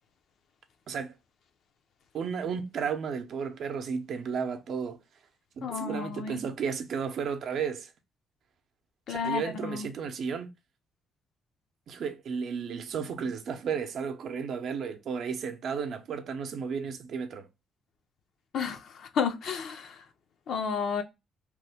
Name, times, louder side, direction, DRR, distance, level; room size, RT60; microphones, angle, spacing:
voice 1, 2.1-5.0 5.6-7.9 9.1-10.5 11.9-17.5, right 6 dB, 65° right, 0.6 m, -33 dB
voice 2, 5.6-6.4 9.1-9.9 18.5-20.0 20.5-21.0, left 6 dB, 70° left, 0.5 m, -32 dB
3.0 x 2.1 x 3.4 m
cardioid pair, 90°, 0 cm